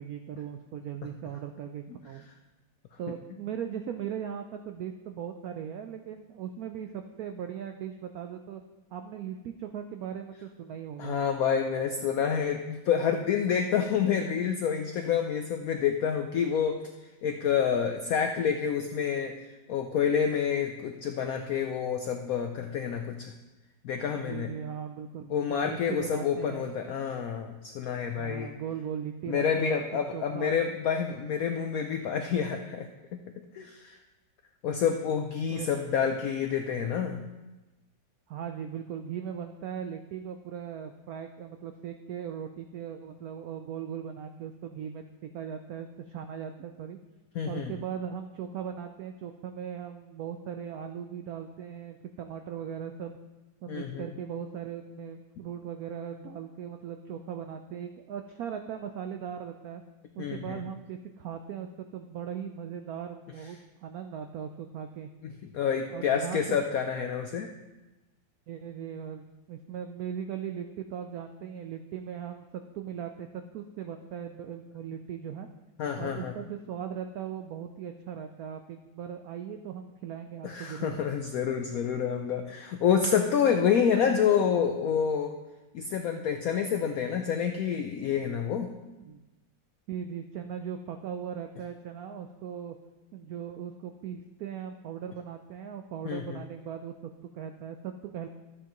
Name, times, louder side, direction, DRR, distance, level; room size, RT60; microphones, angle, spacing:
voice 1, 0.0-2.2 3.0-8.6 8.9-11.2 24.2-26.7 28.1-29.8 30.1-30.6 35.5-35.8 38.3-47.0 47.5-53.2 53.6-59.8 60.1-65.1 65.9-66.6 68.5-75.5 76.0-81.0 89.0-89.2 89.9-92.7 93.1-98.3, right 8 dB, 90° right, 6 dB, 0.8 m, -38 dB
voice 2, 11.0-16.8 17.2-19.3 19.7-23.3 23.8-24.5 25.3-28.5 29.3-33.2 33.5-34.0 34.6-37.2 47.4-47.7 53.7-54.1 60.2-60.6 65.2-67.5 75.8-76.3 80.4-85.4 85.7-88.7 96.0-96.4, left 7 dB, 80° left, 5 dB, 0.7 m, -28 dB
12.5 x 8.2 x 3.0 m, 1.1 s
omnidirectional pair, 2.1 m